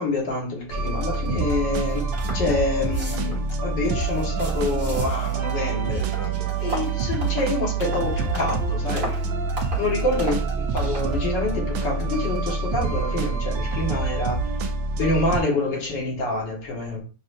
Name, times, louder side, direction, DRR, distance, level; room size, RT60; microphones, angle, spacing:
voice 1, 0.0-2.1 2.3-6.1 6.6-9.2 9.8-10.4 10.7-14.5 15.0-17.0, left 2 dB, 65° left, 2.0 m, -27 dB
sound 1, 0.7-15.4, right 4 dB, 75° right, 1.3 m, -26 dB
sound 2, 0.9-12.6, right 4 dB, 60° right, 1.7 m, -41 dB
sound 3, 1.5-1.6 1.9-2.5 2.8-3.5 4.0-5.5 5.8-8.7 9.0-9.3 9.6-9.9 10.2-10.5 10.8-11.1, right 1 dB, 35° right, 1.4 m, -36 dB
6.7 x 2.5 x 2.6 m
omnidirectional pair, 2.2 m